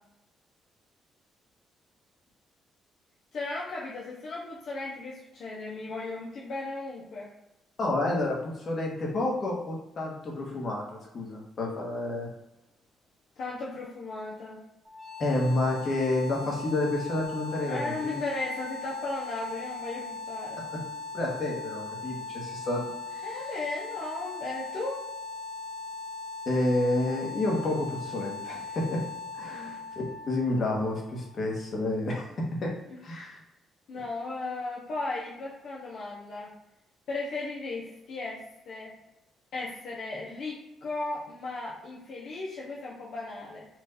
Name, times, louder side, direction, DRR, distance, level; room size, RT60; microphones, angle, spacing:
voice 1, 3.3-7.3 13.4-14.6 17.7-20.6 23.2-25.0 29.5-29.8 32.9-33.0 33.9-36.5 37.1-38.9 39.5-43.7, left 2 dB, 65° left, -5 dB, 0.9 m, -36 dB
voice 2, 7.8-12.3 15.2-18.2 21.1-22.8 23.1-23.3 26.5-29.0 29.3-29.8 30.3-32.3 32.6-32.7 33.0-33.4, left 2 dB, 45° left, -2 dB, 1.4 m, -29 dB
sound 1, 14.8-31.8, left 4 dB, 15° right, 1.0 m, -39 dB
4.5 x 2.6 x 4.1 m, 0.92 s
cardioid pair, 90°, 0 cm